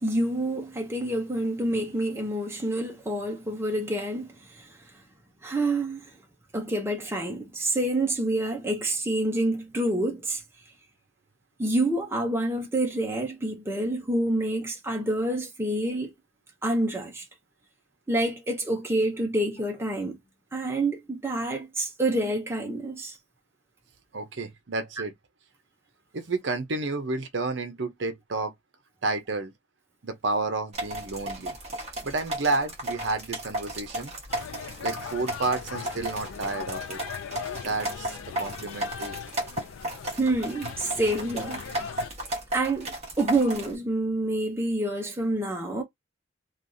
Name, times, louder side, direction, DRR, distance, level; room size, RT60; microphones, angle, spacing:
voice 1, 0.0-4.8 5.4-6.1 6.5-10.4 11.6-16.1 16.6-17.2 18.1-20.2 20.5-23.2 40.2-41.6 42.5-45.8, right 1 dB, 10° right, 0.6 m, -27 dB
voice 2, 24.1-25.1 26.1-28.5 29.0-29.5 30.0-31.6 32.0-34.1 34.8-37.0 37.6-39.2, right 3 dB, 65° right, 0.7 m, -30 dB
sound 1, 30.7-43.8, right 1 dB, 30° right, 1.1 m, -35 dB
sound 2, 34.3-42.1, left 7 dB, 80° left, 0.4 m, -39 dB
3.1 x 2.4 x 2.6 m
head